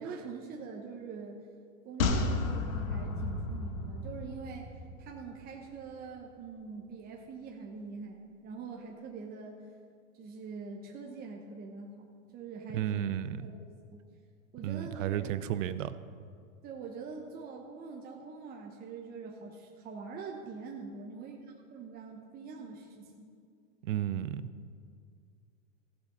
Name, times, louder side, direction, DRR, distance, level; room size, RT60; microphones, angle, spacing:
voice 1, 0.0-1.4 1.8-4.7 5.0-9.6 10.1-14.0 14.5-15.3 16.6-23.3, right 4 dB, 20° right, 0 dB, 1.0 m, -44 dB
sound 1, 2.0-5.4 5.7-5.8, left 3 dB, 75° left, 1.6 m, -33 dB
voice 2, 12.7-13.4 14.6-16.0 23.8-24.4, right 11 dB, 65° right, 13 dB, 0.7 m, -32 dB
15.5 x 6.9 x 5.5 m, 2.2 s
hypercardioid pair, 125°, 41 cm